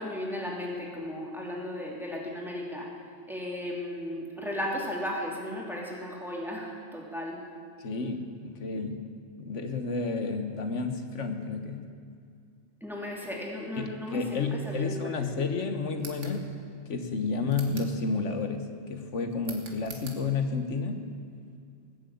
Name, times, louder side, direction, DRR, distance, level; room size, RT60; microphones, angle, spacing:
voice 1, 0.0-3.0 3.3-7.4 12.8-15.5, left 1 dB, ahead, -3 dB, 2.7 m, -35 dB
voice 2, 7.8-9.0 9.4-11.9 13.8-16.5 16.9-21.0, left 4 dB, 85° left, 6 dB, 1.6 m, -31 dB
sound 1, 15.9-16.4 17.5-18.0 19.4-20.2, right 3 dB, 85° right, 2.0 m, -44 dB
19.0 x 7.8 x 8.6 m, 2.3 s
omnidirectional pair, 1.2 m